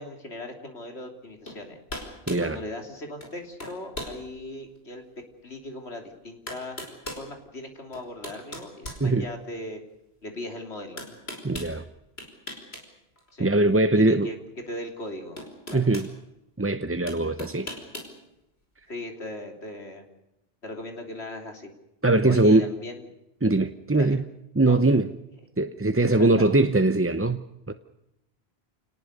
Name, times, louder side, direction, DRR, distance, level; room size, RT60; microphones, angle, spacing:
voice 1, 0.0-1.8 2.4-5.0 5.4-6.8 7.2-9.8 10.2-11.0 13.3-13.5 13.9-14.4 14.7-15.4 15.7-15.9 18.9-20.1 20.6-21.7 22.3-23.1 24.0-24.2 24.6-24.8 26.2-26.5, left 1 dB, 90° left, 4 dB, 3.7 m, -38 dB
sound 1, 1.5-1.6 1.9-2.5 3.2-3.3 3.6-4.2 4.8-4.9 5.9-6.0 6.5-7.3 7.9-9.6 11.0-11.7 12.2-12.9 13.2-13.3 14.7-14.8 15.4-16.1 17.1-18.1, left 1 dB, 75° left, 5.5 m, -38 dB
voice 2, 2.3-2.6 9.0-9.2 11.4-11.8 13.4-14.3 15.7-16.1 16.6-17.7 22.0-22.7 23.4-24.2 24.6-25.1 25.6-27.4 27.7-27.8, right 2 dB, 15° right, 9 dB, 0.7 m, -21 dB
28.5 x 19.0 x 6.7 m, 0.87 s
omnidirectional pair, 1.1 m